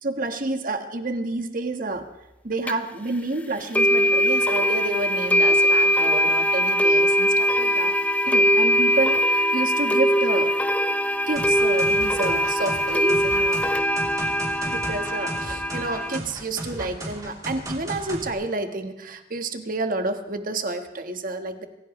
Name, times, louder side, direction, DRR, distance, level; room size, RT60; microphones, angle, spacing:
voice 1, 0.0-2.1 2.4-7.9 8.2-10.5 11.3-13.6 14.6-21.7, right 2 dB, 45° right, 7 dB, 1.4 m, -29 dB
sound 1, 2.7-2.8 3.7-16.2, equal, 10° left, 0.7 m, -21 dB
sound 2, 11.4-18.3, right 1 dB, 20° right, 3.2 m, -35 dB
25.5 x 16.0 x 3.2 m, 0.93 s
head